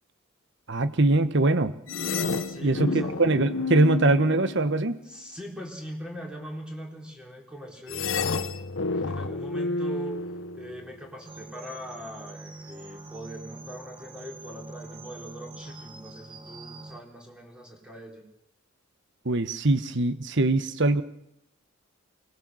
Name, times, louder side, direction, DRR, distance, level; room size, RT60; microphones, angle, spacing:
voice 1, 0.7-1.7 2.6-5.0 19.2-21.0, right 2 dB, 60° right, 12 dB, 1.2 m, -22 dB
sound 1, 1.9-5.1 7.9-11.1, left 3 dB, 70° left, 1.2 m, -30 dB
voice 2, 2.4-3.2 5.0-8.4 8.9-10.2 10.6-18.2, equal, 5° right, 1 dB, 4.1 m, -41 dB
sound 2, 11.3-17.0, right 3 dB, 25° right, 1.8 m, -44 dB
24.5 x 20.0 x 7.7 m, 0.76 s
head